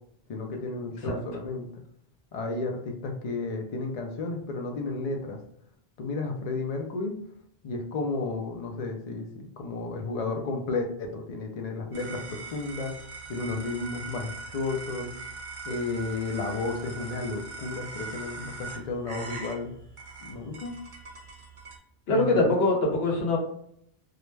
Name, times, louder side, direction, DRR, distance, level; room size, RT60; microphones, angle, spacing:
voice 1, 0.3-1.8 2.3-5.4 6.0-7.1 7.6-12.9 13.3-15.1 15.6-19.7 20.2-20.7 22.1-22.5, left 3 dB, 55° left, 3 dB, 0.4 m, -32 dB
sound 1, 11.9-21.8, right 4 dB, 35° right, 0.7 m, -41 dB
voice 2, 22.1-23.4, left 2 dB, 70° left, 0 dB, 1.0 m, -23 dB
2.4 x 2.1 x 3.1 m, 0.69 s
omnidirectional pair, 1.1 m